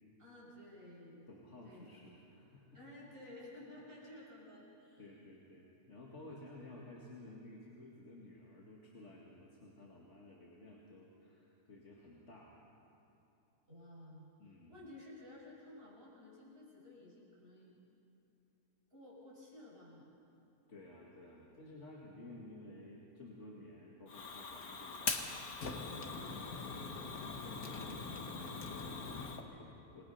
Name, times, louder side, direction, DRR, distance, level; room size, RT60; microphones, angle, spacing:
voice 1, 0.2-1.2 1.6-2.0 2.7-5.1 6.3-6.4 13.7-14.3 14.7-17.8 18.9-20.1, left 1 dB, 40° right, -6 dB, 7.1 m, -54 dB
voice 2, 1.3-2.8 3.3-3.5 3.8-4.1 5.0-12.6 14.4-14.9 20.7-30.0, left 1 dB, 50° left, -4 dB, 2.4 m, -54 dB
Fire, 24.1-29.4, left 4 dB, 70° left, 1.9 m, -42 dB
27.5 x 20.0 x 5.7 m, 2.9 s
omnidirectional pair, 1.6 m